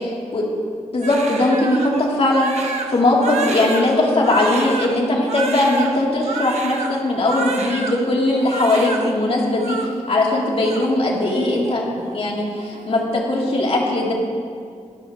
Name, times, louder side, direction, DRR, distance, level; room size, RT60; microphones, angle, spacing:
voice 1, 0.9-14.1, left 2 dB, 55° left, -4 dB, 3.6 m, -19 dB
Crying sobbing, 1.0-8.0 8.3-9.1 9.4-9.9 10.3-11.7 12.0-12.2 12.6-13.0, right 3 dB, 65° right, 1.4 m, -30 dB
24.0 x 16.5 x 3.3 m, 2.2 s
wide cardioid pair, 145°, 12 cm